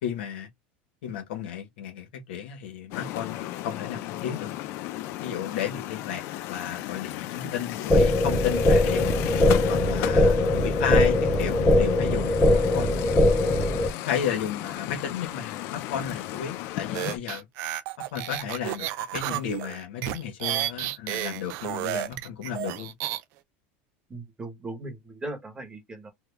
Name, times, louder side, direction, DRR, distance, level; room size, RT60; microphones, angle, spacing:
voice 1, 0.0-0.5 1.0-4.5 5.2-6.2 6.5-9.1 9.7-13.0 14.0-17.5 18.0-22.9, left 8 dB, 85° left, 1.3 m, -33 dB
sound 1, 2.9-17.2, left 15 dB, 50° left, 0.5 m, -35 dB
sound 2, 7.9-13.9, left 1 dB, 5° left, 0.8 m, -21 dB
sound 3, 16.9-23.2, right 14 dB, 50° right, 0.5 m, -31 dB
voice 2, 24.1-26.1, right 2 dB, 15° right, 1.2 m, -38 dB
3.5 x 2.3 x 3.3 m
supercardioid pair, 145°, 6 cm